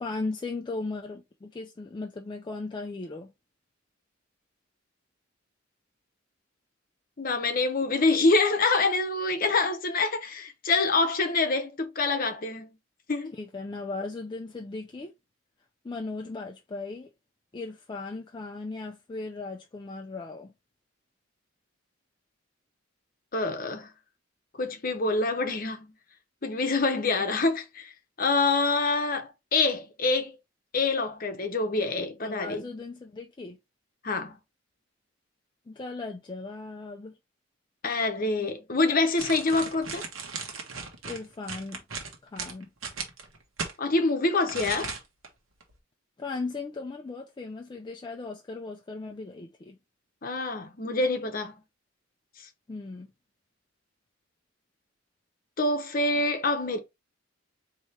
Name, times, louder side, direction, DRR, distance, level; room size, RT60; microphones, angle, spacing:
voice 1, 0.0-3.3 13.3-15.1 15.8-17.1 17.5-20.5 32.2-33.6 35.7-37.2 41.0-41.8 42.2-42.7 46.2-49.8 52.7-53.1, left 3 dB, 25° left, 0.3 m, -37 dB
voice 2, 7.2-12.7 13.1-13.3 23.3-23.9 24.6-25.9 26.4-27.9 28.2-30.4 30.7-32.6 34.0-34.4 37.8-40.0 43.8-44.9 50.2-51.5 55.6-56.8, left 3 dB, 45° left, 0.8 m, -26 dB
sound 1, 39.2-43.8 44.5-45.3 45.6-45.7, right 4 dB, 90° right, 1.1 m, -37 dB
4.2 x 2.9 x 3.2 m
head